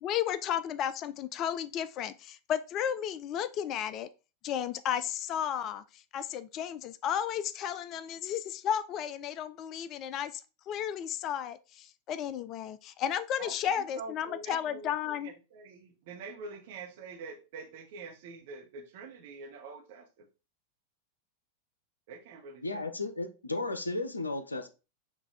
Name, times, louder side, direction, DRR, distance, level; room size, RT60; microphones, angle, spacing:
voice 1, 0.0-4.1 4.4-10.4 10.7-15.3, left 9 dB, 35° left, 0.3 m, -33 dB
voice 2, 13.4-20.3 22.1-22.9, right 4 dB, 50° right, 1.0 m, -45 dB
voice 3, 22.6-24.7, left 2 dB, 80° left, 0.6 m, -34 dB
5.8 x 2.6 x 3.3 m
figure-of-eight pair, 90°, 0 cm